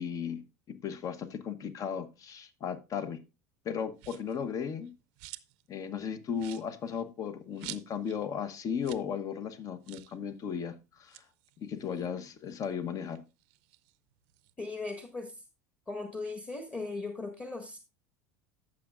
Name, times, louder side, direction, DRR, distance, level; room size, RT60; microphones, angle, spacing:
voice 1, 0.0-3.2 3.6-4.9 5.7-11.2 11.6-13.2, left 7 dB, 40° left, 1.1 m, -36 dB
sound 1, 4.0-4.4 4.8-5.7 6.0-6.1 6.3-8.2 8.5-8.6 8.8-9.1 9.4-9.5 9.8-10.2 10.9-12.7 13.1-14.5, right 20 dB, 60° right, 0.6 m, -49 dB
voice 2, 14.6-15.4 15.9-17.8, left 3 dB, 20° left, 1.7 m, -38 dB
14.5 x 6.3 x 2.4 m
hypercardioid pair, 80°, 9 cm